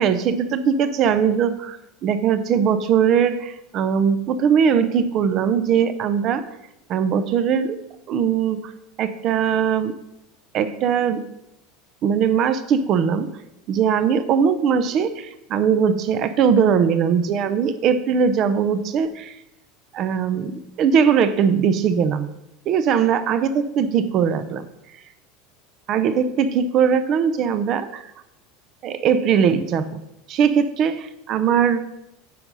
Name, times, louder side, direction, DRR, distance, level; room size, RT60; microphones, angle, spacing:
voice 1, 0.0-6.5 6.9-7.8 8.1-8.7 9.0-9.9 10.5-11.2 12.0-13.3 13.7-19.3 19.9-22.3 22.7-24.7 25.9-28.0 28.8-30.0 30.3-31.9, right 7 dB, 45° right, 12 dB, 0.7 m, -20 dB
9.4 x 4.8 x 5.4 m, 0.88 s
supercardioid pair, 135°, 0 cm